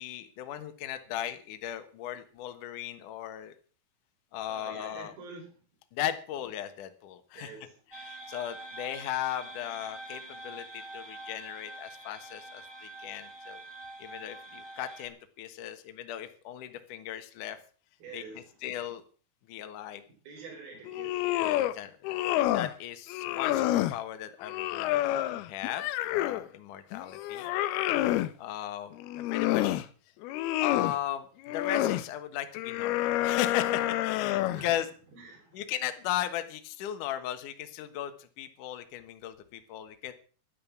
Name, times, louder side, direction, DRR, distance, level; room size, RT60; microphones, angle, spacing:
voice 1, 0.0-3.5 4.3-5.1 5.9-7.5 8.1-13.6 14.0-17.6 18.1-18.2 18.6-19.0 19.5-20.0 21.4-25.0 25.3-27.5 28.4-29.9 30.6-34.9 35.5-40.1, left 12 dB, 60° left, 8 dB, 2.6 m, -37 dB
voice 2, 4.5-5.5 7.3-7.8 18.0-18.6 20.1-21.6 34.2-34.7 35.1-35.6, right 4 dB, 70° right, 0 dB, 6.1 m, -47 dB
sound 1, 7.9-15.1, right 1 dB, 20° right, 0.7 m, -45 dB
sound 2, 20.9-21.8 22.0-22.7 23.1-24.0 24.4-26.5 26.9-28.3 29.0-29.9 30.2-31.0 31.5-32.0 32.6-34.7, left 14 dB, 85° left, 2.8 m, -28 dB
12.5 x 11.0 x 7.2 m, 0.41 s
omnidirectional pair, 4.5 m